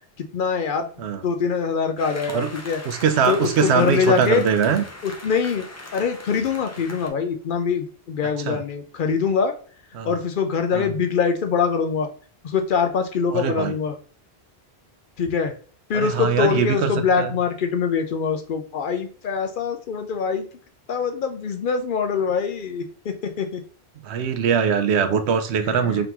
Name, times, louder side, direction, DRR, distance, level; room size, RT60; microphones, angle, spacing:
voice 1, 0.2-0.9 1.2-2.8 3.3-4.5 5.0-5.7 5.9-9.5 10.1-12.1 12.4-13.9 15.2-15.5 15.9-20.4 20.9-23.6 25.7-26.1, left 6 dB, 60° left, 0.6 m, -24 dB
sound 1, 2.0-7.1, left 2 dB, 20° left, 0.4 m, -39 dB
voice 2, 2.8-4.8 8.4-8.6 9.9-10.1 10.7-10.9 13.3-13.7 15.9-16.9 17.2-17.4 24.0-26.1, right 7 dB, 85° right, 0.9 m, -22 dB
3.7 x 3.5 x 2.9 m
omnidirectional pair, 1.1 m